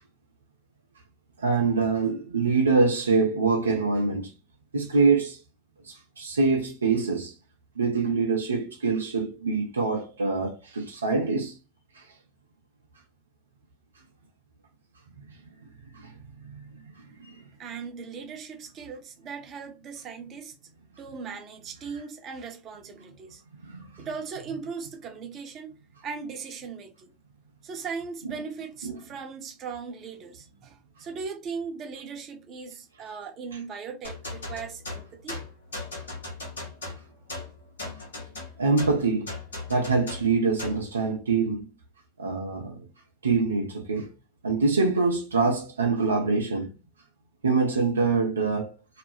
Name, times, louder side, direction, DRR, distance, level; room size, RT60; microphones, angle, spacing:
voice 1, 1.4-4.3 4.7-5.4 5.9-7.3 7.8-11.5 12.0-12.1 15.9-16.2 16.4-16.7 17.2-17.3 23.6-23.8 28.8-28.9 38.6-39.3 39.7-41.7 42.2-42.8 43.2-44.1 44.4-46.7 47.4-48.8, right 4 dB, 80° right, 0.4 m, -25 dB
voice 2, 17.6-20.5 21.0-23.4 24.0-25.7 26.0-27.1 27.6-35.4, right 5 dB, 40° right, 0.7 m, -38 dB
sound 1, 34.0-40.9, left 2 dB, 75° left, 0.7 m, -38 dB
2.3 x 2.1 x 3.1 m
figure-of-eight pair, 80°, 0 cm